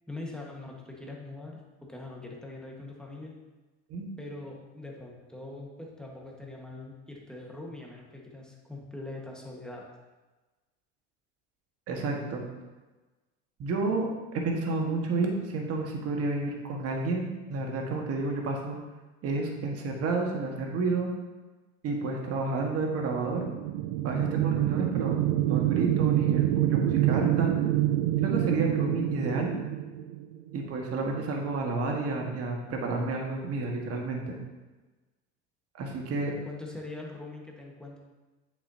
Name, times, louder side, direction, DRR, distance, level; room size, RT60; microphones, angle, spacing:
voice 1, 0.1-3.3 4.2-9.8 36.2-38.0, left 2 dB, ahead, -2 dB, 1.5 m, -42 dB
voice 2, 11.9-12.4 13.6-18.8 19.2-21.1 21.8-23.5 24.0-27.5 28.2-29.6 30.5-34.4 35.8-36.3, right 3 dB, 45° right, 0 dB, 1.6 m, -30 dB
sound 1, 22.9-30.5, right 13 dB, 90° right, 0.5 m, -27 dB
8.4 x 7.0 x 2.8 m, 1.2 s
supercardioid pair, 105°, 33 cm